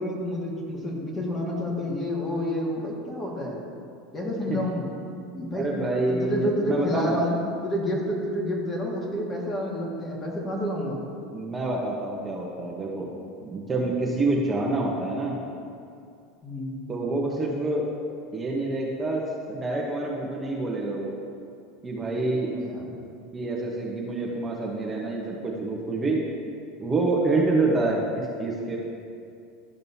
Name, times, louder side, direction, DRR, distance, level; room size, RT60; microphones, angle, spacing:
voice 1, 0.0-3.6 4.1-4.9 5.3-5.7 6.1-11.0 16.4-16.8 22.5-23.0, left 1 dB, 20° left, -3 dB, 1.8 m, -29 dB
voice 2, 5.5-7.2 11.3-13.1 13.4-15.4 16.9-17.9 18.3-21.1 21.8-22.6 23.3-26.2 26.8-28.8, right 2 dB, 20° right, -4 dB, 1.1 m, -27 dB
12.5 x 5.3 x 2.8 m, 2.4 s
supercardioid pair, 110°, 0 cm